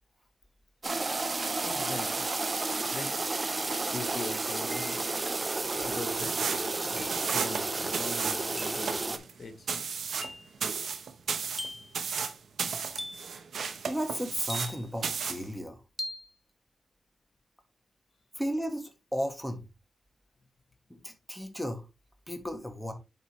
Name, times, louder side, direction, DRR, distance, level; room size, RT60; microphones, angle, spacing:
sound 1, 0.8-9.2, right 3 dB, 40° right, 0.8 m, -31 dB
voice 1, 1.6-2.3 2.9-3.2 3.9-5.0 5.9-6.4 7.3-9.8, left 3 dB, 60° left, 1.5 m, -41 dB
sound 2, 3.5-3.6 4.7-5.2 7.0-7.3 8.6-8.9 10.2-10.5 11.6-12.0 13.0-13.4 14.5-15.0 16.0-16.3, left 1 dB, 15° left, 0.3 m, -41 dB
sound 3, 6.2-14.8 15.0-15.5, right 6 dB, 80° right, 0.8 m, -34 dB
voice 2, 13.9-15.8 18.4-19.6 20.9-21.8 22.3-22.9, equal, ahead, 1.5 m, -34 dB
8.0 x 4.6 x 3.1 m
cardioid pair, 65°, 0 cm